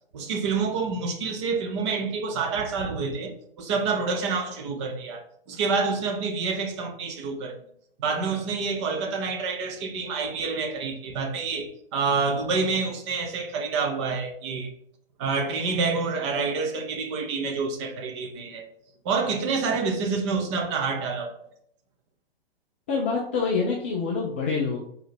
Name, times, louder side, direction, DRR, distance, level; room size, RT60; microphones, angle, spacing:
voice 1, 0.1-3.3 3.6-5.2 5.5-7.5 8.0-14.7 15.2-18.7 19.0-21.3, right 4 dB, 30° right, 0.8 m, -27 dB
voice 2, 22.9-24.8, left 4 dB, 15° left, 0.3 m, -26 dB
4.0 x 2.8 x 4.2 m
figure-of-eight pair, 120°, 30 cm